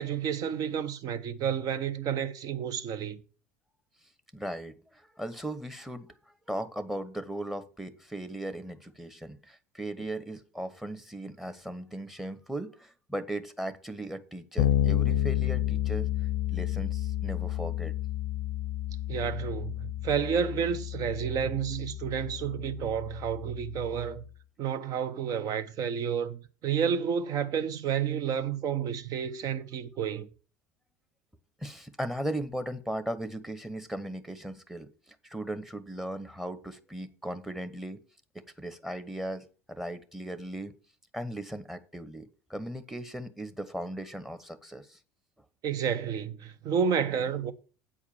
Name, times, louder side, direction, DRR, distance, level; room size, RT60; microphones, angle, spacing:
voice 1, 0.0-3.2 19.1-24.2 24.6-30.3 45.6-47.5, right 7 dB, 50° right, 0.9 m, -30 dB
voice 2, 4.3-16.1 16.5-17.9 31.6-38.0 38.3-40.7 41.1-45.0, right 1 dB, 5° right, 1.1 m, -37 dB
Bass guitar, 14.6-24.2, left 12 dB, 65° left, 0.6 m, -31 dB
8.5 x 4.8 x 7.0 m
hypercardioid pair, 70°, 8 cm